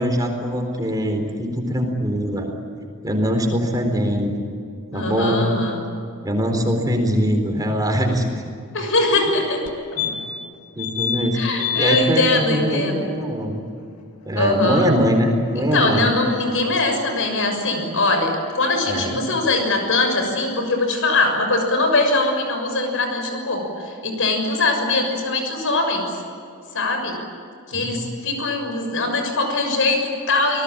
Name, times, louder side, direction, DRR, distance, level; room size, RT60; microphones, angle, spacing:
voice 1, 0.0-2.5 3.0-4.5 4.9-5.5 6.2-8.4 10.0-10.1 10.8-11.4 11.7-13.6 14.3-16.1 18.9-19.1 27.7-28.0, equal, 15° right, 3 dB, 4.0 m, -22 dB
voice 2, 4.9-5.8 8.7-9.6 11.3-13.0 14.4-14.9 15.6-26.0 26.7-27.1 27.7-30.6, left 2 dB, 60° left, 5 dB, 6.5 m, -21 dB
sound 1, 9.7-9.8 10.0-10.5 10.8-11.2 11.6-12.0 14.4-14.5 14.7-14.8, left 9 dB, 85° left, 2.4 m, -25 dB
28.5 x 19.5 x 8.8 m, 2.4 s
head